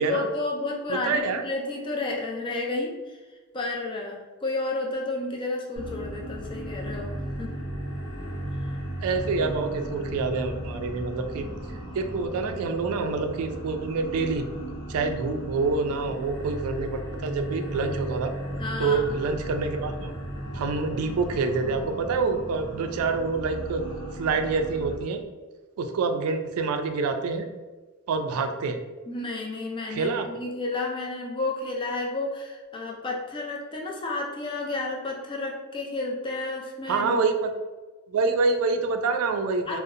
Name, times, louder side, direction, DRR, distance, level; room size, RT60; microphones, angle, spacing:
voice 1, 0.0-3.2 3.5-7.5 18.6-19.2 29.1-37.2 39.7-39.8, left 2 dB, 25° left, 0 dB, 0.3 m, -31 dB
voice 2, 0.9-1.4 9.0-11.5 11.9-14.5 14.9-18.3 18.8-20.1 20.5-23.8 24.2-25.2 25.8-27.5 28.1-28.8 29.9-30.3 36.9-37.5 38.1-39.8, right 4 dB, 80° right, 7 dB, 0.3 m, -27 dB
sound 1, 5.8-25.0, equal, 85° left, 0.8 m, -35 dB
2.6 x 2.0 x 2.5 m, 1.3 s
head